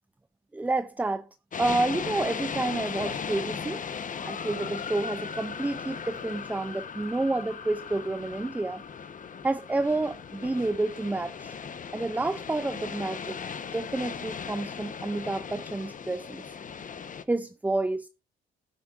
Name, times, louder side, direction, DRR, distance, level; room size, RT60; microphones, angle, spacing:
voice 1, 0.5-1.3 1.6-3.8 4.2-8.8 9.4-11.6 11.9-13.4 13.7-16.5 17.3-18.1, right 2 dB, 10° right, 0.4 m, -29 dB
sound 1, 1.5-17.2, left 6 dB, 40° left, 1.0 m, -37 dB
17.5 x 8.8 x 2.5 m
cardioid pair, 90°, 20 cm